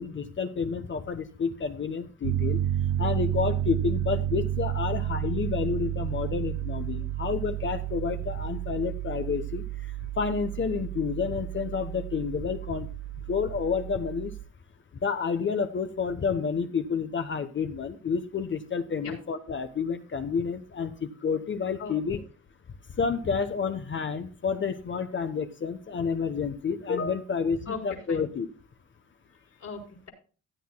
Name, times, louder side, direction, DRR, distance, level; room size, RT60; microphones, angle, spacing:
voice 1, 0.0-2.6 3.0-9.6 10.2-12.9 13.3-14.3 15.0-22.2 23.0-28.5, left 5 dB, 40° left, 8 dB, 1.1 m, -29 dB
Piano, 2.2-14.4, right 11 dB, 85° right, 0.6 m, -31 dB
voice 2, 27.7-28.3 29.3-30.1, left 5 dB, 60° left, 2 dB, 4.4 m, -39 dB
16.0 x 9.3 x 2.2 m, 0.38 s
cardioid pair, 90°, 30 cm